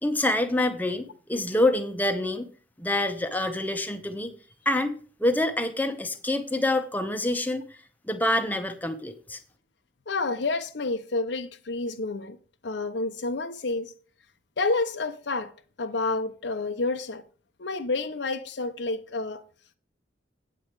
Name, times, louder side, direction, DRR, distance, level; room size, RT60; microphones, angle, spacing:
voice 1, 0.0-2.5 2.8-4.3 4.6-7.8 8.1-9.4, left 1 dB, 10° left, 0.8 m, -26 dB
voice 2, 10.1-12.4 12.6-13.9 14.6-15.5 15.8-17.2 17.6-19.4, left 3 dB, 70° left, 0.7 m, -29 dB
8.5 x 8.5 x 4.7 m
head